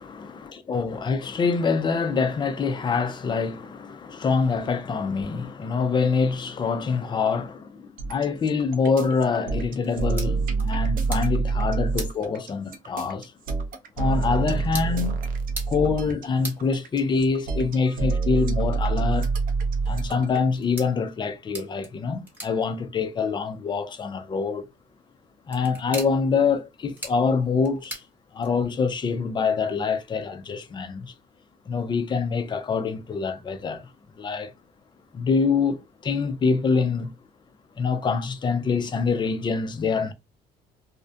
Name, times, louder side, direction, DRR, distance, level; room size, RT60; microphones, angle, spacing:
voice 1, 0.0-13.3 14.0-15.2 15.7-19.3 19.8-24.6 25.5-28.0 28.3-31.1 31.7-33.9 34.2-34.5 35.1-37.1 37.8-40.1, left 5 dB, 25° left, 0.4 m, -25 dB
sound 1, 8.0-20.4, right 4 dB, 55° right, 0.5 m, -26 dB
sound 2, 9.8-28.8, right 1 dB, 10° right, 1.2 m, -44 dB
2.4 x 2.1 x 2.5 m
cardioid pair, 110°, 17 cm